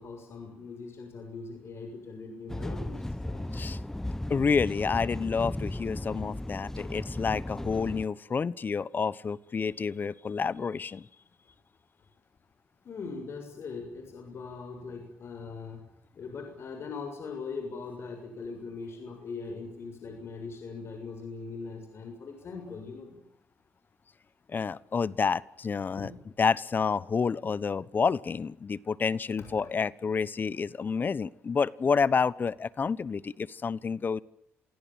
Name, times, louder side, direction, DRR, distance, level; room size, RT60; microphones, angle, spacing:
voice 1, 0.0-3.5 12.8-15.9 16.1-23.2 26.0-26.2 29.4-29.7, left 4 dB, 55° left, 4 dB, 7.0 m, -41 dB
sound 1, 2.5-8.1, left 1 dB, 10° left, 1.0 m, -35 dB
voice 2, 4.3-11.1 24.5-26.1 26.4-34.2, left 5 dB, 40° left, 20 dB, 1.1 m, -29 dB
27.0 x 17.5 x 9.2 m, 0.77 s
cardioid pair, 85°, 5 cm